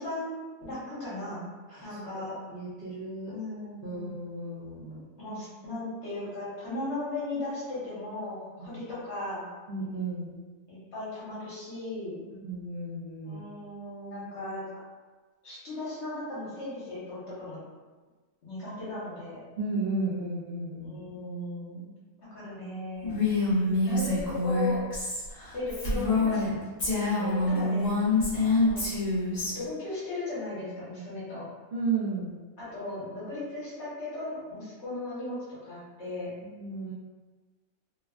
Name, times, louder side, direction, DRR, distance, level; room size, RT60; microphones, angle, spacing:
voice 1, 0.0-1.4 1.8-2.3 3.3-4.1 4.9-9.4 10.7-12.2 13.2-14.6 15.4-17.6 18.4-19.4 20.8-21.9 22.3-23.3 23.8-24.8 25.5-26.7 27.5-27.9 28.4-28.9 29.5-31.4 32.6-35.4 35.6-36.3, left 2 dB, 55° left, -9 dB, 1.3 m, -37 dB
voice 2, 2.5-3.3 3.8-5.1 8.7-8.8 9.7-10.4 12.4-13.4 19.6-21.0 27.1-27.6 31.7-32.3 36.6-36.9, right 3 dB, 65° right, -9 dB, 0.5 m, -34 dB
Female speech woman speaking, 23.0-26.5 26.8-29.5, left 2 dB, 35° left, 0.7 m, -26 dB
3.0 x 2.2 x 2.3 m, 1.3 s
omnidirectional pair, 1.5 m